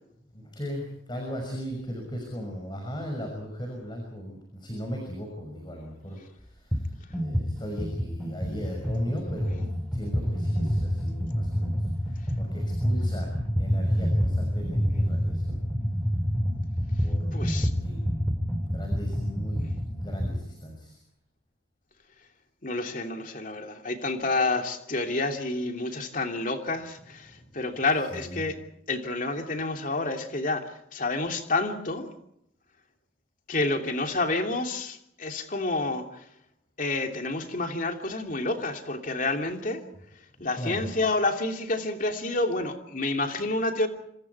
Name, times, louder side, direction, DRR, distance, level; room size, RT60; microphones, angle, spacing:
voice 1, 0.3-9.6 9.9-15.6 17.0-18.2 18.5-21.0 27.3-27.4 28.1-28.5 40.6-40.9, equal, 25° left, 2 dB, 6.1 m, -37 dB
sound 1, 6.7-6.9 7.1-20.4, equal, 5° left, 4.0 m, -28 dB
voice 2, 17.3-17.7 22.6-28.6 28.9-32.1 33.5-36.2 36.8-39.8 40.4-43.9, left 2 dB, 45° left, 4 dB, 2.9 m, -29 dB
27.0 x 26.5 x 4.7 m, 0.77 s
head